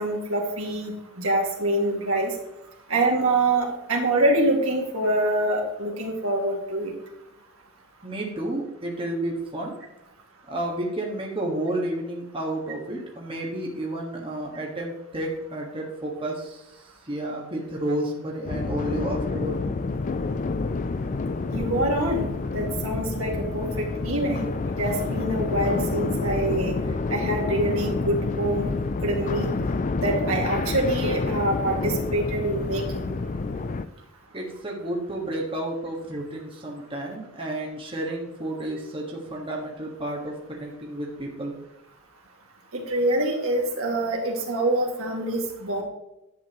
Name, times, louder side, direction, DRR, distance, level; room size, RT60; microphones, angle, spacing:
voice 1, 0.0-2.3 2.9-6.9 21.5-24.5 24.8-26.7 27.1-28.7 29.0-29.5 30.0-33.1 42.7-45.8, right 1 dB, 70° right, 0 dB, 2.2 m, -25 dB
voice 2, 8.0-9.7 10.5-19.6 34.3-41.6, right 1 dB, 25° right, -1 dB, 1.6 m, -31 dB
sound 1, 18.5-33.9, left 3 dB, 35° left, 0.4 m, -28 dB
11.0 x 7.9 x 3.0 m, 0.90 s
head